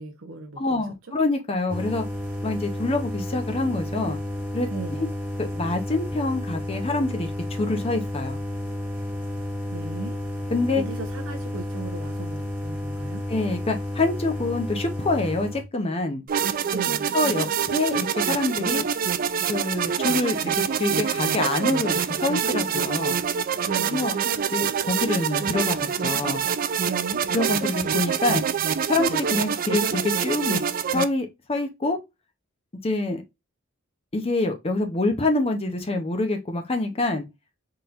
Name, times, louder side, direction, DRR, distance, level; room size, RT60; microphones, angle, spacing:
voice 1, 0.0-1.1 4.7-5.1 9.7-10.2 10.8-13.2 16.7-17.1 23.6-24.2 26.8-27.2, right 3 dB, 75° right, 0.7 m, -36 dB
voice 2, 0.6-2.0 2.4-4.2 4.5-4.7 5.4-8.4 10.5-10.8 13.3-16.2 17.1-18.8 19.5-20.4 20.8-23.2 23.9-24.2 24.5-26.4 27.3-28.4 28.9-30.6 30.9-32.0 32.8-33.2 34.1-37.3, left 2 dB, 30° left, 0.7 m, -26 dB
sound 1, 1.7-15.6, left 1 dB, 5° right, 1.5 m, -31 dB
sound 2, 16.3-31.0, right 7 dB, 45° right, 0.4 m, -25 dB
4.2 x 3.8 x 2.4 m
head